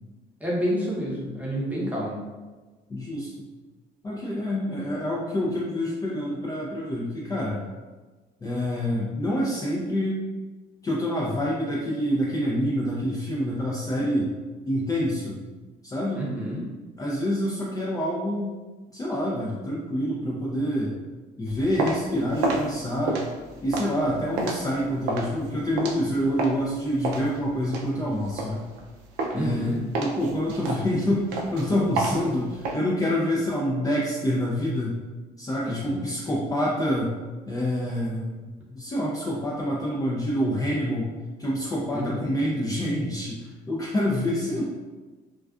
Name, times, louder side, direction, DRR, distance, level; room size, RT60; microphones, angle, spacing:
voice 1, 0.4-2.2 16.2-16.7 29.3-29.8 35.6-36.0 41.9-42.3, equal, 10° right, -6 dB, 0.7 m, -29 dB
voice 2, 2.9-3.5 4.0-7.6 8.4-10.2 10.8-14.3 14.7-15.4 15.8-16.2 17.0-18.5 18.9-21.0 21.4-23.2 23.6-28.6 29.3-35.0 35.4-37.1 37.5-41.1 41.4-44.6, equal, 20° left, -5 dB, 0.4 m, -27 dB
sound 1, 21.5-26.7 27.0-28.9 29.2-29.6 29.9-32.7, right 3 dB, 90° right, 0.4 m, -29 dB
2.3 x 2.3 x 2.3 m, 1.3 s
cardioid pair, 110°, 17 cm